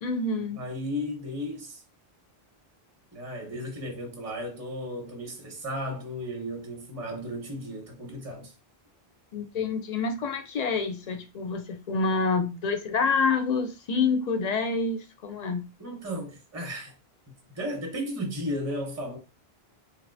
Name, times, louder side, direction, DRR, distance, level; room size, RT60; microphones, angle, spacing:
voice 1, 0.0-0.6 9.3-15.7, left 4 dB, 50° left, 0.5 m, -27 dB
voice 2, 0.6-1.8 3.1-8.5 15.8-16.9 17.5-19.2, equal, 15° right, 0.7 m, -34 dB
3.4 x 2.6 x 2.5 m
omnidirectional pair, 1.0 m